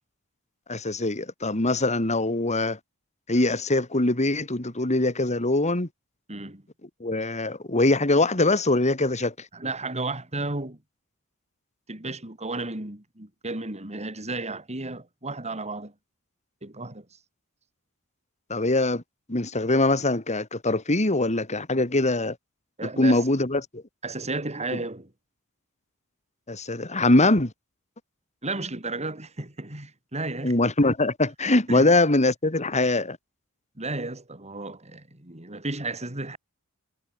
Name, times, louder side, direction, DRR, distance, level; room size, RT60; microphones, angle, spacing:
voice 1, 0.7-2.8 3.3-5.9 7.0-9.5 18.5-19.0 19.3-22.4 22.8-23.8 26.5-27.5 30.4-33.2, left 2 dB, 30° left, 2.8 m, -23 dB
voice 2, 6.3-6.6 9.5-10.8 11.9-15.9 16.6-17.1 22.8-23.2 24.0-25.1 28.4-30.5 31.7-31.9 33.8-36.4, right 2 dB, 30° right, 3.7 m, -33 dB
head